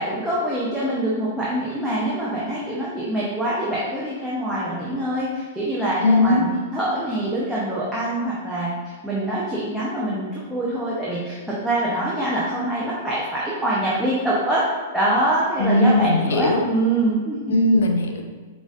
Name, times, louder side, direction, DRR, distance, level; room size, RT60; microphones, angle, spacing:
voice 1, 0.0-8.7 9.0-14.6 14.9-17.4, right 1 dB, 5° right, -8 dB, 0.9 m, -24 dB
voice 2, 6.0-6.4 15.6-16.6 17.5-18.3, left 2 dB, 80° left, 4 dB, 0.6 m, -18 dB
4.7 x 4.1 x 2.5 m, 1.4 s
hypercardioid pair, 120°, 0 cm